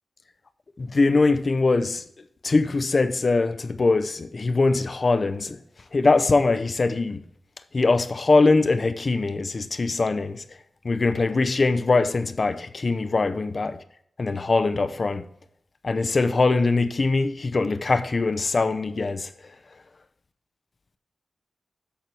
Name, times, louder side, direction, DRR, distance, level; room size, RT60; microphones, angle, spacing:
voice 1, 0.8-2.0 2.4-5.6 5.9-7.3 7.7-10.4 10.8-13.8 14.2-15.3 15.8-19.3, left 3 dB, 45° left, 0.7 m, -22 dB
13.0 x 4.4 x 4.7 m
wide cardioid pair, 90°, 0 cm